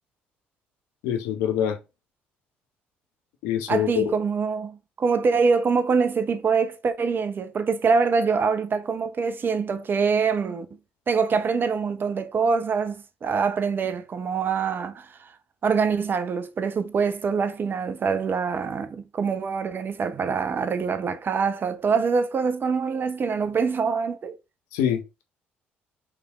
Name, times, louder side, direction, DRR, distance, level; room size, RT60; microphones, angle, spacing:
voice 1, 1.0-1.8 3.4-4.1 24.7-25.2, left 9 dB, 65° left, 0.7 m, -25 dB
voice 2, 3.7-10.7 11.1-15.3 15.6-24.3, right 5 dB, 40° right, 0.7 m, -24 dB
4.9 x 3.2 x 2.4 m
figure-of-eight pair, 50°, 6 cm